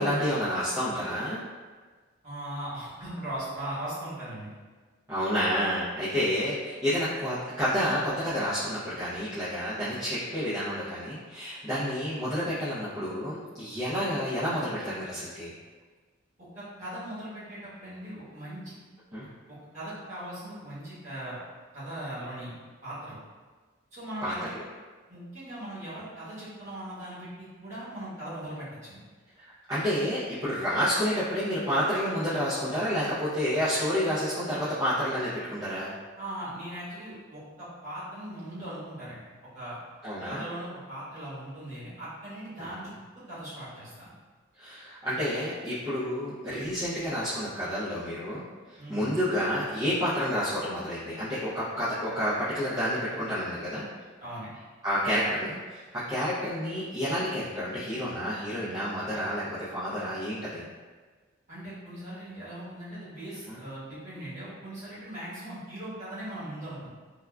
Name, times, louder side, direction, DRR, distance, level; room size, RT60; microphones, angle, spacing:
voice 1, 0.0-1.4 5.1-15.5 19.1-19.3 24.2-24.3 29.4-35.9 40.0-40.4 42.6-42.7 44.6-53.9 54.8-60.6 63.5-63.6, equal, 15° right, -14 dB, 0.5 m, -29 dB
voice 2, 2.2-4.5 16.4-18.7 19.5-21.4 21.7-22.5 22.8-23.2 23.9-24.5 25.1-29.0 36.2-39.2 39.5-39.8 40.3-42.9 43.3-44.1 48.8-49.0 54.2-54.5 61.5-66.9, right 1 dB, 40° right, -11 dB, 1.1 m, -39 dB
3.5 x 2.2 x 2.2 m, 1.4 s
head